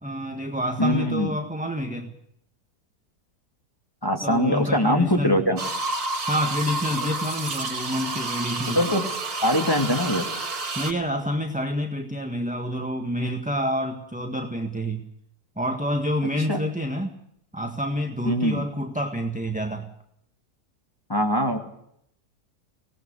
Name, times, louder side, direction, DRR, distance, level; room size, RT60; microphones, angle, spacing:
voice 1, 0.0-2.1 4.2-5.5 6.3-8.8 10.7-15.1 15.6-17.2 17.5-19.9, equal, 5° right, 5 dB, 1.5 m, -28 dB
voice 2, 0.8-1.3 4.0-5.6 8.7-9.0 9.4-10.3 16.5-16.6 18.2-18.6 21.1-21.6, equal, 15° left, 4 dB, 2.8 m, -22 dB
sound 1, 5.6-10.9, right 3 dB, 65° right, 2.7 m, -30 dB
25.5 x 18.5 x 6.7 m, 0.73 s
omnidirectional pair, 1.7 m